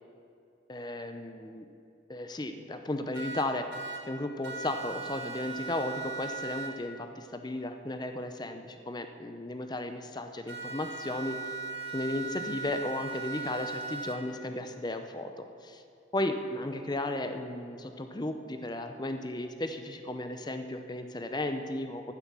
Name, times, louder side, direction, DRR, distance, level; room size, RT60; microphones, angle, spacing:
voice 1, 0.7-1.6 2.1-3.7 4.1-11.5 11.9-15.8 16.1-22.1, left 1 dB, 20° left, 7 dB, 0.6 m, -35 dB
sound 1, 3.1-4.0 4.4-6.7 10.5-14.2, right 4 dB, 65° right, 1.5 m, -38 dB
14.5 x 7.7 x 6.2 m, 2.5 s
head